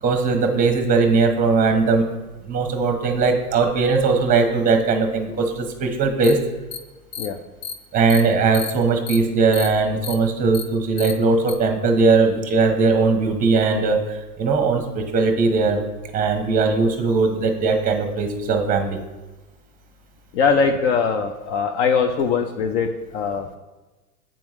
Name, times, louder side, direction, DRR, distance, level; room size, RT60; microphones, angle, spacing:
voice 1, 0.0-2.0 2.4-6.4 7.9-15.8 16.1-19.0, right 4 dB, 20° right, 5 dB, 0.8 m, -19 dB
sound 1, 6.2-6.3 6.7-6.8 7.1-7.3 7.6-7.7 8.1-8.2 8.5-8.7 9.1-9.2 9.5-9.7 10.0-10.1 10.5-10.6 11.0-11.1 11.5-11.6, left 8 dB, 75° left, 0.9 m, -31 dB
voice 2, 20.3-23.6, left 5 dB, 55° left, 6 dB, 0.6 m, -21 dB
8.7 x 3.5 x 3.1 m, 1.2 s
hypercardioid pair, 120°, 44 cm